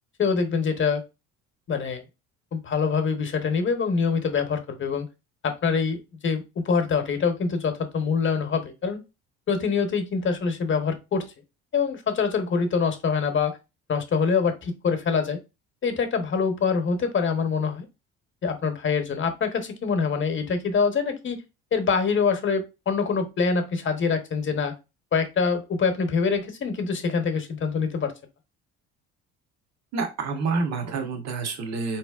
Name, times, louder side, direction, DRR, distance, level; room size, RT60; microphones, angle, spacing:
voice 1, 0.2-1.0 1.7-2.0 2.5-5.1 5.4-9.0 9.5-11.3 11.7-13.6 13.9-15.4 15.8-17.9 18.4-21.4 21.7-24.7 25.1-28.1, left 5 dB, 40° left, 7 dB, 1.0 m, -25 dB
voice 2, 29.9-32.0, right 4 dB, 55° right, 4 dB, 1.1 m, -28 dB
3.9 x 3.0 x 2.4 m, 0.26 s
supercardioid pair, 80°, 31 cm